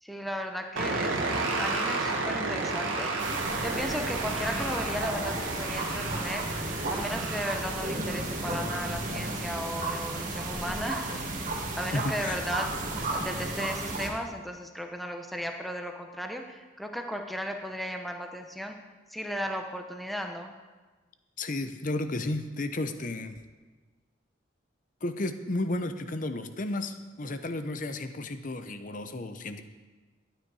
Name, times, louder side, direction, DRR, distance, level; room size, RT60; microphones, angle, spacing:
voice 1, 0.0-18.8 19.1-20.5, equal, ahead, 4 dB, 0.8 m, -36 dB
sound 1, 0.8-9.4, right 3 dB, 85° right, 1.6 m, -33 dB
sound 2, 3.2-14.1, right 2 dB, 45° right, 1.9 m, -33 dB
voice 2, 11.9-12.4 21.4-23.4 25.0-29.6, left 2 dB, 40° left, 9 dB, 0.7 m, -33 dB
12.5 x 9.3 x 4.8 m, 1.3 s
head